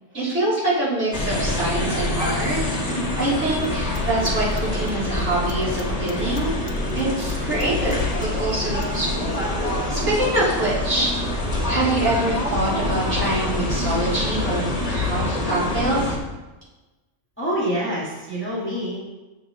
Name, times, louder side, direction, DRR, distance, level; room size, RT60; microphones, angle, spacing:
voice 1, 0.1-6.6 6.9-9.4 9.6-11.3 11.6-16.2, right 1 dB, 55° right, -10 dB, 3.6 m, -25 dB
sound 1, 1.1-16.2, left 1 dB, 30° left, 1.2 m, -25 dB
sound 2, 3.6-9.0, left 5 dB, 75° left, 1.1 m, -37 dB
voice 2, 17.4-19.0, equal, 10° left, -7 dB, 1.7 m, -26 dB
8.0 x 7.0 x 3.7 m, 1.1 s
omnidirectional pair, 1.4 m